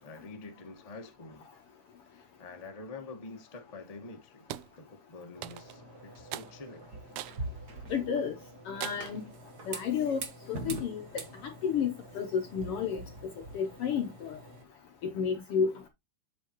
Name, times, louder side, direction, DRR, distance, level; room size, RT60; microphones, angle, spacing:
voice 1, 0.0-1.5 2.1-6.9, left 3 dB, 35° left, 0.5 m, -47 dB
sound 1, 4.5-4.7 5.4-5.8 6.3-6.5 7.2-7.4 7.9-8.0 8.8-9.2, right 15 dB, 85° right, 2.0 m, -40 dB
sound 2, 5.4-14.6, right 2 dB, 40° right, 1.6 m, -44 dB
voice 2, 7.9-8.3 8.7-9.2 9.7-10.2 10.5-11.0 11.4-14.4 15.1-15.9, left 7 dB, 70° left, 1.4 m, -31 dB
7.4 x 7.2 x 2.9 m
omnidirectional pair, 3.4 m